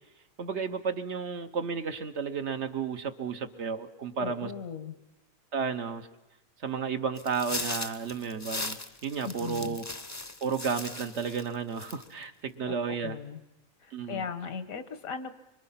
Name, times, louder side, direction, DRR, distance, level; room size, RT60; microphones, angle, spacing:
voice 1, 0.4-4.5 5.5-6.1 6.6-8.8 9.0-9.8 10.4-13.2 13.9-14.2, right 6 dB, 55° right, 8 dB, 1.2 m, -32 dB
voice 2, 4.2-5.0 9.2-9.8 12.7-12.8 13.0-13.4 13.8-15.4, left 6 dB, 80° left, 11 dB, 1.6 m, -38 dB
sound 1, 7.2-11.5 11.8-12.2, left 2 dB, 15° left, 0.6 m, -38 dB
25.5 x 24.5 x 5.8 m, 0.99 s
omnidirectional pair, 1.4 m